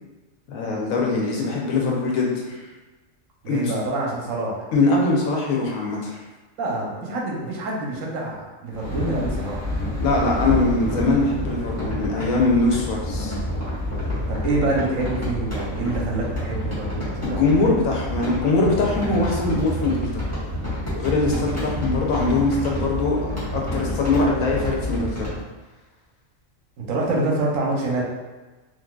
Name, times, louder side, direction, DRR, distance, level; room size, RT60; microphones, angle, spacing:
voice 1, 0.5-2.7 3.5-3.7 4.7-6.2 10.0-13.4 17.2-20.2 21.0-23.2 23.5-25.3, left 3 dB, 85° left, -2 dB, 1.1 m, -22 dB
voice 2, 3.4-4.7 6.6-9.7 14.3-17.4 26.8-28.0, right 2 dB, 80° right, -2 dB, 1.1 m, -26 dB
sound 1, 8.7-25.4, left 1 dB, 10° left, 1.3 m, -28 dB
3.9 x 2.7 x 2.3 m, 1.2 s
omnidirectional pair, 1.4 m